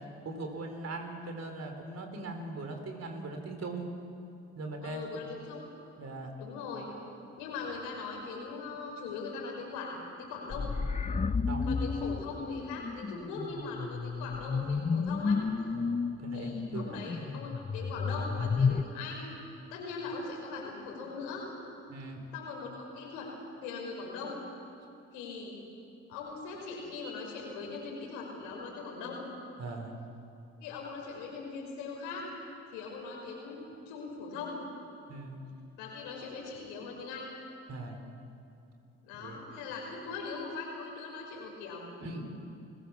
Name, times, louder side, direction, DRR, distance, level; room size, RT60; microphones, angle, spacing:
voice 1, 0.2-3.9 4.6-5.2 6.0-6.3 11.2-11.8 15.7-17.1 21.9-22.2 29.6-30.0 35.1-35.4 37.7-38.0 39.2-39.4 42.0-42.3, right 2 dB, 55° right, 4 dB, 4.3 m, -40 dB
voice 2, 4.8-5.7 6.4-6.9 7.4-10.7 11.6-15.4 16.3-19.3 19.7-21.5 22.3-23.3 23.6-24.4 25.1-25.6 26.1-29.2 30.6-32.3 32.7-34.6 35.8-37.3 39.0-41.8, left 4 dB, 85° left, -1 dB, 5.5 m, -40 dB
sound 1, 10.5-18.8, left 5 dB, 20° left, 0.8 m, -32 dB
28.5 x 17.0 x 7.3 m, 2.6 s
hypercardioid pair, 55°, 32 cm